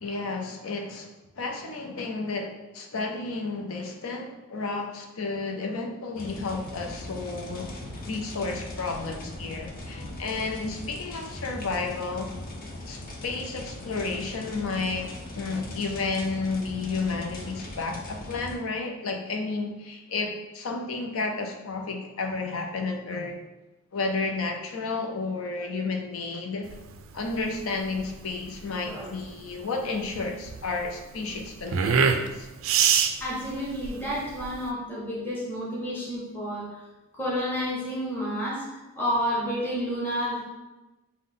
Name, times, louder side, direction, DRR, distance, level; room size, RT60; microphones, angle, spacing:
voice 1, 0.0-1.1 1.4-7.7 8.0-12.3 12.9-23.4 23.9-26.7 27.1-32.5, left 3 dB, 80° left, 3 dB, 0.6 m, -32 dB
sound 1, 6.1-18.6, left 1 dB, 45° left, 0.6 m, -40 dB
sound 2, 26.7-34.7, right 6 dB, 65° right, 0.3 m, -27 dB
voice 2, 33.2-36.7 37.1-38.6 39.0-40.4, equal, 10° left, -7 dB, 0.9 m, -30 dB
5.3 x 2.2 x 3.7 m, 1.1 s
head